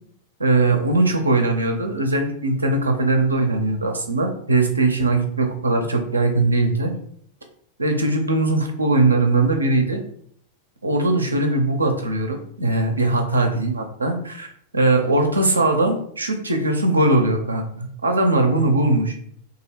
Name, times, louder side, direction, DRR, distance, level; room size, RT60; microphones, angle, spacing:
voice 1, 0.4-6.9 7.8-10.0 10.8-19.1, right 2 dB, 80° right, 4 dB, 0.5 m, -20 dB
2.8 x 2.4 x 3.3 m, 0.63 s
figure-of-eight pair, 90°, 0 cm